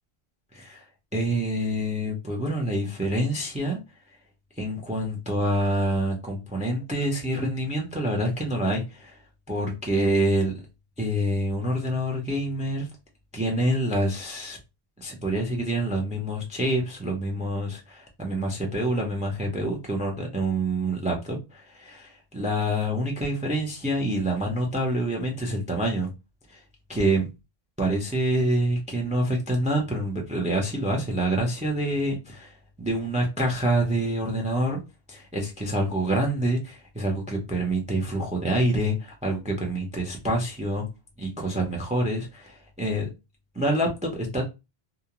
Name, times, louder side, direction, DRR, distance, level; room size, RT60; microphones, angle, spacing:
voice 1, 0.5-0.8 1.1-3.8 4.6-9.2 9.5-10.5 11.0-12.9 13.3-14.6 15.0-26.1 26.5-26.6 26.9-27.2 27.8-32.5 32.8-34.8 35.1-40.8 41.2-43.1 43.6-44.5, right 1 dB, 10° right, 0.4 m, -26 dB
2.4 x 2.1 x 2.8 m
omnidirectional pair, 1.1 m